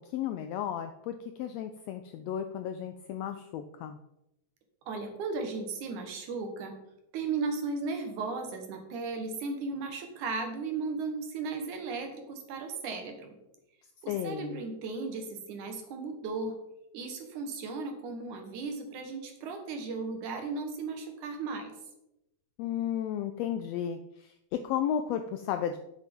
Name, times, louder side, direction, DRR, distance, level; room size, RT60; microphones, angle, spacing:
voice 1, 0.1-4.0 14.1-14.6 22.6-25.8, left 9 dB, 85° left, 8 dB, 1.5 m, -33 dB
voice 2, 4.9-6.7 7.1-13.4 14.0-16.6 16.9-21.7, right 4 dB, 80° right, 4 dB, 2.7 m, -36 dB
9.0 x 7.5 x 3.6 m, 0.86 s
omnidirectional pair, 3.5 m